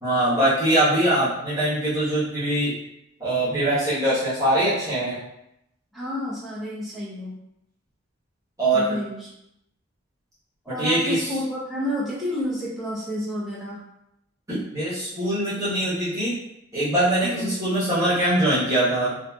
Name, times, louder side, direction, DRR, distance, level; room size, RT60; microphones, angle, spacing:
voice 1, 0.0-2.7 3.2-5.2 8.6-9.0 10.8-11.3 14.5-16.3 16.7-19.2, right 1 dB, 15° right, -12 dB, 0.9 m, -22 dB
voice 2, 5.9-7.4 8.7-9.3 10.6-13.8 17.2-17.5, left 1 dB, ahead, -9 dB, 0.5 m, -30 dB
2.6 x 2.5 x 2.2 m, 0.83 s
head